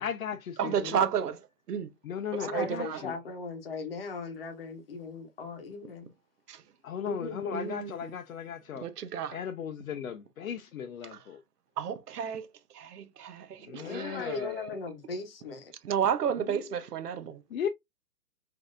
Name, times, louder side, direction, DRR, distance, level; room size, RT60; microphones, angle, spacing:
voice 1, 0.0-1.0 2.0-3.1 6.8-8.9 9.3-11.4 13.7-14.7 16.5-16.6 17.5-17.7, left 8 dB, 65° left, 0.6 m, -36 dB
voice 2, 0.6-1.4 1.7-1.9 2.5-3.0 6.5-6.6 7.5-7.9 8.8-9.4 11.8-12.5 12.7-14.3 15.8-17.4, right 8 dB, 80° right, 0.8 m, -31 dB
voice 3, 2.4-6.1 7.0-7.8 13.8-15.7, left 3 dB, 40° left, 0.9 m, -38 dB
4.2 x 2.8 x 2.4 m
hypercardioid pair, 170°, 46 cm